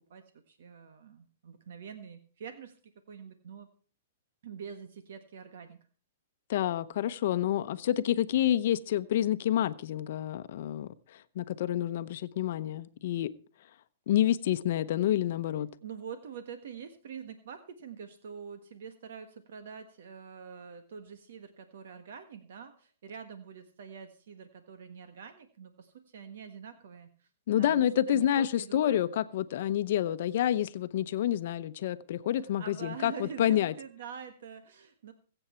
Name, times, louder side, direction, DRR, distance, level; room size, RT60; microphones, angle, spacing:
voice 1, 0.1-2.8 3.1-3.7 4.4-5.8 15.8-27.3 27.6-29.0 32.4-35.1, right 7 dB, 70° right, 1.5 m, -45 dB
voice 2, 6.5-13.3 14.1-15.7 27.5-33.7, left 11 dB, 60° left, 0.8 m, -28 dB
22.0 x 8.0 x 4.4 m
hypercardioid pair, 145°, 0 cm